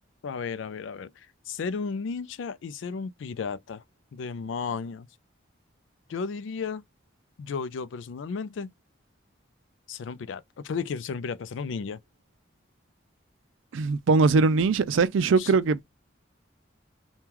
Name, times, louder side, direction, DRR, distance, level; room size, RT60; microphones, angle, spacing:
voice 1, 0.2-3.8 4.1-5.1 6.1-6.8 7.4-8.7 9.9-12.0 15.4-15.5, left 5 dB, 75° left, 0.4 m, -34 dB
voice 2, 13.7-15.8, right 4 dB, 80° right, 0.4 m, -21 dB
2.9 x 2.2 x 3.6 m
head